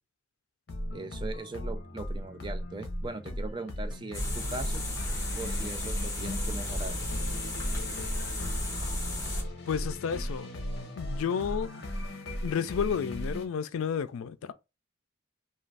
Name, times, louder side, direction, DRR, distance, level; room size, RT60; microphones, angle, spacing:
sound 1, 0.7-13.5, equal, 50° left, 0.7 m, -36 dB
voice 1, 0.9-4.8 5.3-7.0, right 3 dB, 20° right, 0.3 m, -40 dB
sound 2, 4.1-9.4, left 1 dB, 15° left, 0.8 m, -34 dB
voice 2, 9.7-10.5 11.0-11.7 12.4-14.5, left 7 dB, 85° left, 0.3 m, -31 dB
2.5 x 2.3 x 3.2 m
head